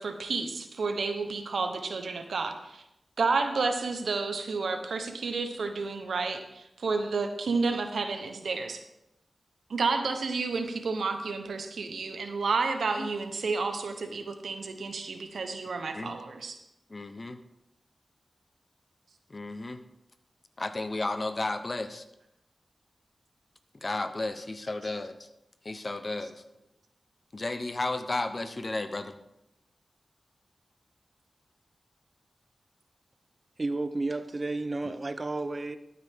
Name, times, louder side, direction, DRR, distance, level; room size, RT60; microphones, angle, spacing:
voice 1, 0.0-2.8 3.2-8.8 9.7-16.6, right 4 dB, 85° right, 1.1 m, -31 dB
voice 2, 16.9-17.4 19.3-19.8 20.6-22.0 23.8-25.3 25.6-26.4 27.3-29.2, left 2 dB, 45° left, 1.0 m, -33 dB
voice 3, 33.6-35.8, right 2 dB, 45° right, 0.7 m, -32 dB
12.5 x 8.8 x 3.7 m
cardioid pair, 50°, 0 cm